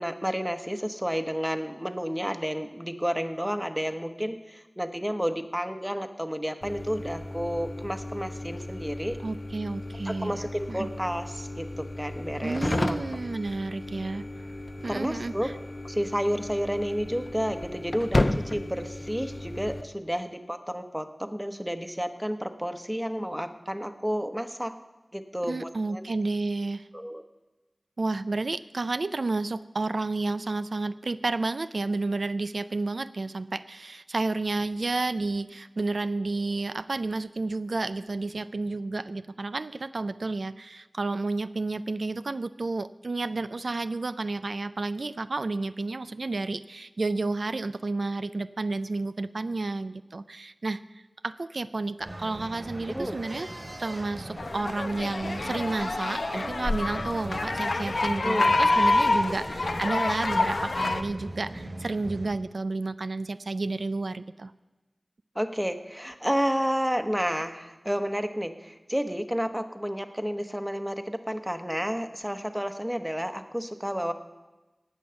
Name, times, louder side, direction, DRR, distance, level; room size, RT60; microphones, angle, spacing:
voice 1, 0.0-9.2 10.0-13.0 14.9-15.5 15.8-24.7 25.1-26.0 26.9-27.2 52.9-53.2 58.1-58.5 65.3-74.1, equal, 5° right, 8 dB, 1.0 m, -31 dB
sound 1, 6.6-19.8, left 1 dB, 45° left, 0.7 m, -34 dB
voice 2, 9.2-10.9 12.4-14.2 14.8-15.5 25.5-26.9 28.0-53.5 53.8-64.5, right 3 dB, 85° right, 13 dB, 0.4 m, -31 dB
sound 2, 52.0-62.3, right 1 dB, 50° right, 3.7 m, -40 dB
sound 3, 54.4-61.0, left 2 dB, 90° left, 0.7 m, -26 dB
18.0 x 6.4 x 6.9 m, 1.1 s
wide cardioid pair, 45°, 0 cm